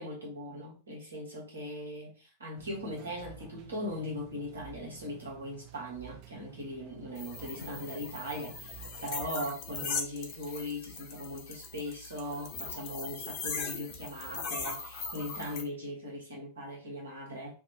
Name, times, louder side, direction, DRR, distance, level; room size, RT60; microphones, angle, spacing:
voice 1, 0.0-17.5, equal, 75° right, 1.1 m, -39 dB
sound 1, 2.6-9.2, right 13 dB, 40° right, 0.4 m, -52 dB
sound 2, 7.1-15.6, left 4 dB, 45° left, 0.8 m, -39 dB
Drum, 7.6-9.3, left 3 dB, 75° left, 0.3 m, -52 dB
2.5 x 2.0 x 2.7 m
figure-of-eight pair, 90°, 0 cm